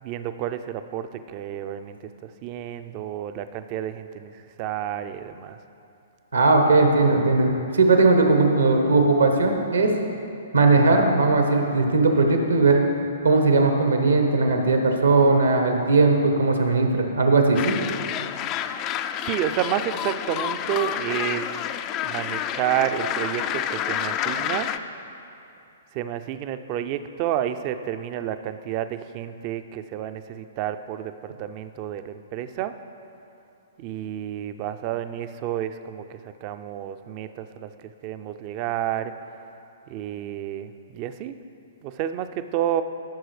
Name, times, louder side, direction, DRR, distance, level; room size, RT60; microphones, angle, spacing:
voice 1, 0.0-5.6 19.2-21.6 22.0-24.7 25.9-32.7 33.8-39.1 39.9-41.4 41.8-42.8, right 11 dB, 35° right, 10 dB, 0.4 m, -30 dB
voice 2, 6.3-9.9 10.5-12.8 13.2-17.7, right 3 dB, 80° right, 3 dB, 1.1 m, -18 dB
sound 1, 17.5-24.8, left 10 dB, 30° left, 0.3 m, -29 dB
14.5 x 6.1 x 3.2 m, 2.7 s
figure-of-eight pair, 120°, 0 cm